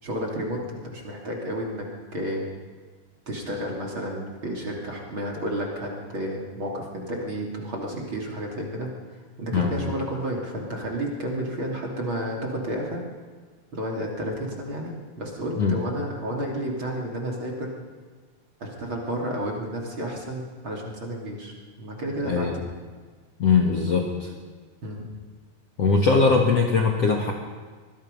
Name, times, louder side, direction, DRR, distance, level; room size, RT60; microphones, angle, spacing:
voice 1, 0.0-2.5 3.3-8.9 9.4-13.0 13.7-17.7 18.6-22.5 24.8-25.1, equal, 35° right, -2 dB, 3.3 m, -31 dB
voice 2, 23.4-24.3 25.8-27.3, left 4 dB, 55° left, 0 dB, 2.0 m, -21 dB
25.0 x 20.0 x 5.4 m, 1.5 s
omnidirectional pair, 4.7 m